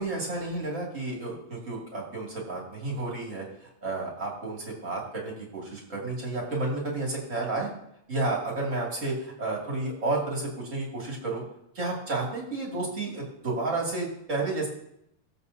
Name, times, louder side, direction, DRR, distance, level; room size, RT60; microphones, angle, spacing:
voice 1, 0.0-7.7 8.1-11.4 11.8-14.7, right 2 dB, 25° right, -3 dB, 1.9 m, -31 dB
20.0 x 7.5 x 2.8 m, 0.77 s
omnidirectional pair, 4.8 m